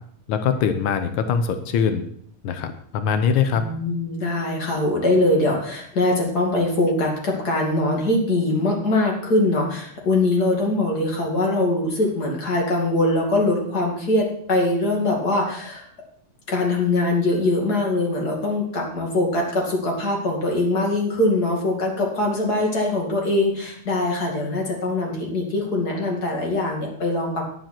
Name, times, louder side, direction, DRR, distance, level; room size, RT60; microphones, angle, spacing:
voice 1, 0.3-2.0 2.4-3.7, left 6 dB, 90° left, 9 dB, 1.1 m, -22 dB
voice 2, 3.5-15.9 16.5-27.5, left 2 dB, 30° left, -1 dB, 2.8 m, -22 dB
10.5 x 10.5 x 4.5 m, 0.62 s
omnidirectional pair, 3.5 m